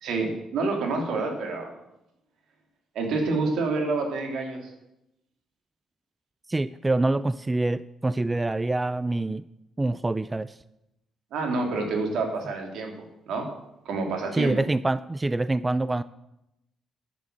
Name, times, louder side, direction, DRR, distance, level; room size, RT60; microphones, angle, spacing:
voice 1, 0.0-1.7 2.9-4.7 11.3-12.9 13.3-13.5 13.8-14.5, right 3 dB, 75° right, 2 dB, 2.7 m, -28 dB
voice 2, 6.5-9.5 9.8-10.6 14.3-16.0, right 2 dB, 15° right, 16 dB, 0.3 m, -26 dB
10.5 x 6.9 x 7.8 m, 0.87 s
cardioid pair, 90°, 0 cm